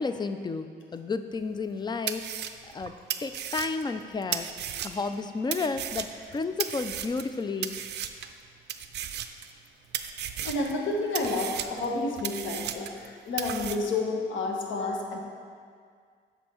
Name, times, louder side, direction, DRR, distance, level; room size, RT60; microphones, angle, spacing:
voice 1, 0.0-2.2 2.7-4.5 4.8-7.8, left 4 dB, 20° left, 10 dB, 0.4 m, -32 dB
sound 1, 1.6-1.7 2.1-5.1 5.5-7.3 7.6-8.3 8.7-9.7 9.9-10.8 11.1-13.1 13.4-13.8, right 10 dB, 60° right, 0.4 m, -35 dB
voice 2, 10.4-15.2, left 2 dB, 75° left, 0 dB, 1.1 m, -30 dB
7.1 x 5.3 x 4.4 m, 2.1 s
cardioid pair, 90°, 20 cm